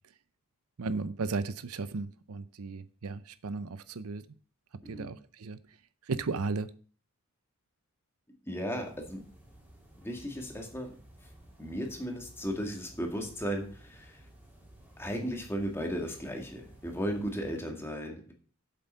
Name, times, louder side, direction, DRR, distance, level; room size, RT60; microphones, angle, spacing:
voice 1, 0.8-4.3 4.9-5.6 6.1-6.7, right 4 dB, 75° right, 14 dB, 0.6 m, -35 dB
voice 2, 4.8-5.2 8.3-9.2 10.0-11.0 11.2-11.3 11.6-14.3 15.0-18.3, equal, 10° left, 2 dB, 1.9 m, -36 dB
sound 1, 8.8-17.6, right 1 dB, 10° right, 2.8 m, -55 dB
7.9 x 7.6 x 5.6 m, 0.42 s
head